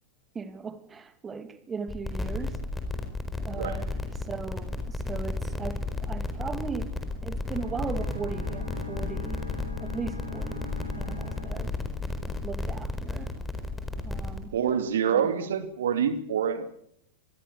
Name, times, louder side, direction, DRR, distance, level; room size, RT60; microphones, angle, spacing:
voice 1, 0.3-2.6 3.4-3.9 4.3-6.9 7.2-9.4 9.8-10.7 11.0-11.7 12.4-13.3 14.0-14.5 15.1-15.3, right 5 dB, 20° right, 10 dB, 2.5 m, -37 dB
sound 1, 1.9-14.4, left 3 dB, 10° left, 4.5 m, -33 dB
sound 2, 7.5-12.5, left 2 dB, 85° right, 4.6 m, -40 dB
voice 2, 14.5-16.7, right 8 dB, 60° right, 9 dB, 2.6 m, -26 dB
26.0 x 21.5 x 7.0 m, 0.67 s
figure-of-eight pair, 90°, 0 cm